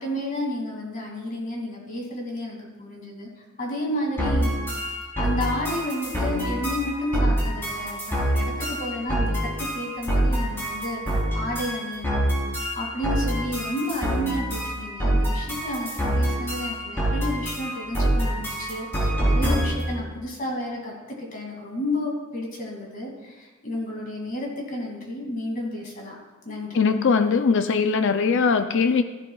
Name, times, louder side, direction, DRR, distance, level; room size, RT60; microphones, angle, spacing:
voice 1, 0.0-3.3 3.6-26.1 26.4-26.8, left 1 dB, 40° left, -1 dB, 2.4 m, -31 dB
sound 1, 4.2-19.9, right 1 dB, 10° left, 3.7 m, -26 dB
voice 2, 26.7-29.0, left 5 dB, 60° left, 8 dB, 0.4 m, -20 dB
14.5 x 11.5 x 2.4 m, 1.2 s
head